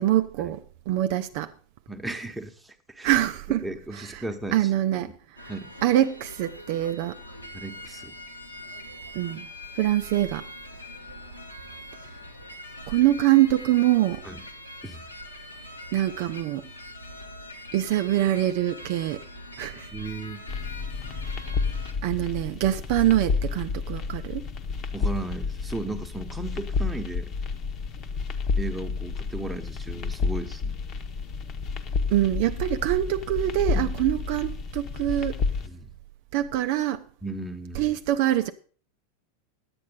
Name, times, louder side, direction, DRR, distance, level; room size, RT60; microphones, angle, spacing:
voice 1, 0.0-1.5 3.0-3.7 3.9-4.2 4.5-5.5 5.8-7.2 9.1-9.5 9.7-10.5 12.9-14.2 15.9-16.7 17.7-19.2 19.6-19.9 22.0-24.5 32.1-35.4 36.3-37.0 37.7-38.5, right 13 dB, 45° right, 0.4 m, -24 dB
voice 2, 1.9-3.1 3.6-4.6 5.0-5.1 5.5-5.7 7.5-8.1 14.2-14.4 14.8-15.0 19.9-20.4 24.9-27.3 28.6-30.8 33.7-33.9 35.6-35.9 37.2-38.0, right 2 dB, 5° right, 1.1 m, -35 dB
sound 1, 5.4-21.9, left 1 dB, 85° left, 1.5 m, -43 dB
sound 2, 20.5-35.7, left 5 dB, 35° left, 1.0 m, -30 dB
10.5 x 8.4 x 5.2 m
figure-of-eight pair, 90°, 0 cm